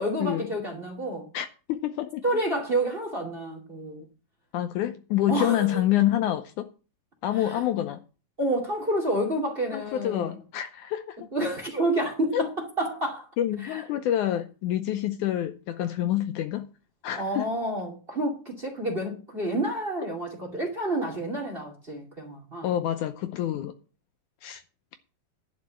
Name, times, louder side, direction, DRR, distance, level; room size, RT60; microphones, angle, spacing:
voice 1, 0.0-1.3 2.2-4.0 5.3-5.8 7.5-7.6 8.4-10.3 11.3-12.5 12.8-13.3 13.6-13.8 17.2-22.7, right 1 dB, 20° right, 2.1 m, -29 dB
voice 2, 1.3-2.2 4.5-6.7 7.2-8.0 9.7-11.2 12.3-12.4 13.4-16.7 17.0-17.5 22.6-23.7 24.4-24.6, left 12 dB, 75° left, 2.0 m, -27 dB
11.0 x 5.2 x 8.4 m
omnidirectional pair, 3.9 m